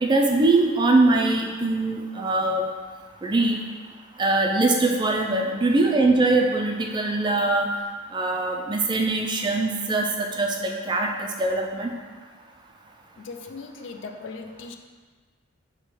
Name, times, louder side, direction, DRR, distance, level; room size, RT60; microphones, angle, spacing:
voice 1, 0.0-2.7 3.2-3.6 4.2-7.7 8.1-11.9, right 2 dB, 20° right, 1 dB, 0.3 m, -22 dB
voice 2, 13.2-14.8, left 4 dB, 60° left, 5 dB, 0.3 m, -38 dB
5.2 x 2.2 x 4.5 m, 1.5 s
head